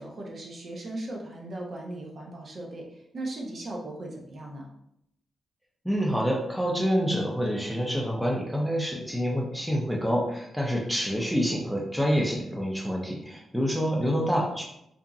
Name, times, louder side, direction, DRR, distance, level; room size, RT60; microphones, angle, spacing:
voice 1, 0.0-4.7, right 1 dB, 45° right, -1 dB, 0.6 m, -38 dB
voice 2, 5.8-14.6, equal, ahead, -2 dB, 0.5 m, -27 dB
2.8 x 2.6 x 2.4 m, 0.77 s
cardioid pair, 105°, 0 cm